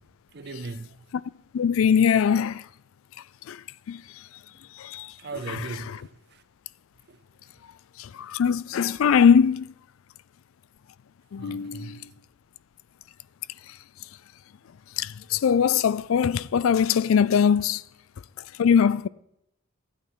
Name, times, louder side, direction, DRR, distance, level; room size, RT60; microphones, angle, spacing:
voice 1, 0.3-1.0 5.2-6.4 7.1-7.2 11.4-12.0, right 3 dB, 50° right, 0.7 m, -38 dB
voice 2, 1.5-2.7 3.5-4.3 4.7-5.1 5.5-5.6 8.0-9.7 11.3-12.1 13.7-13.8 15.0-17.8 18.4-19.1, left 7 dB, 75° left, 0.4 m, -22 dB
12.5 x 8.6 x 5.6 m
head